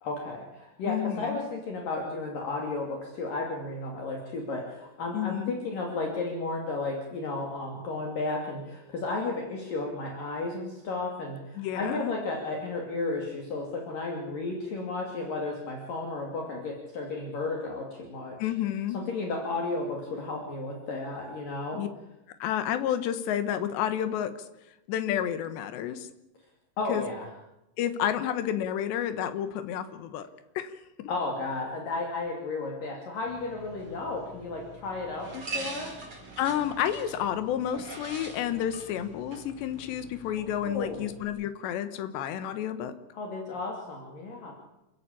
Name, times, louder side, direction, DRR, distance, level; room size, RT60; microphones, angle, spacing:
voice 1, 0.0-18.4 18.9-21.8 26.8-27.3 31.1-35.9 40.6-41.0 43.1-44.5, left 3 dB, 55° left, 1 dB, 4.1 m, -33 dB
voice 2, 0.9-1.4 5.1-5.6 11.6-12.1 18.4-19.0 21.7-21.9 22.4-24.4 24.9-26.1 26.9-27.0 27.8-30.3 30.6-30.7 31.0-31.1 36.4-42.9, left 10 dB, 85° left, 10 dB, 3.6 m, -30 dB
sound 1, 33.3-41.3, right 2 dB, 30° right, 5.7 m, -43 dB
28.0 x 14.5 x 8.6 m, 0.91 s
omnidirectional pair, 4.9 m